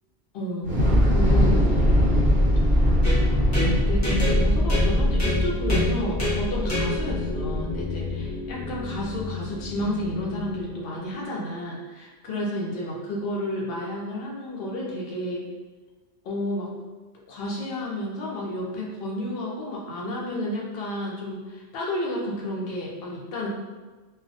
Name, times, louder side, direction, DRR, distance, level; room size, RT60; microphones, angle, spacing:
voice 1, 0.3-1.7 2.8-3.0 3.6-15.5 16.2-16.7 17.3-23.5, left 1 dB, 60° left, -3 dB, 0.7 m, -31 dB
Thunder / Explosion, 0.6-8.8, equal, 15° right, 1.1 m, -22 dB
sound 1, 3.0-10.8, left 2 dB, 20° left, 0.5 m, -29 dB
2.2 x 2.1 x 2.6 m, 1.3 s
omnidirectional pair, 1.2 m